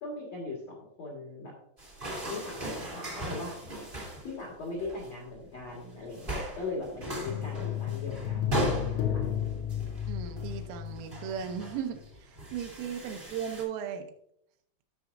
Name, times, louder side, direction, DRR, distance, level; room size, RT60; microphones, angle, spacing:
voice 1, 0.0-1.6 2.3-3.6 4.2-9.3 9.5-9.7 13.1-13.3, left 3 dB, 65° left, -2 dB, 1.7 m, -40 dB
sound 1, 1.8-4.3 4.6-5.1 5.6-5.8 6.1-13.6, right 1 dB, 50° right, 0.6 m, -37 dB
sound 2, 7.3-11.7 12.0-12.1, left 10 dB, 90° left, 3.5 m, -33 dB
voice 2, 10.1-14.1, right 8 dB, 80° right, 6 dB, 3.5 m, -37 dB
15.5 x 6.2 x 2.6 m, 0.72 s
omnidirectional pair, 5.9 m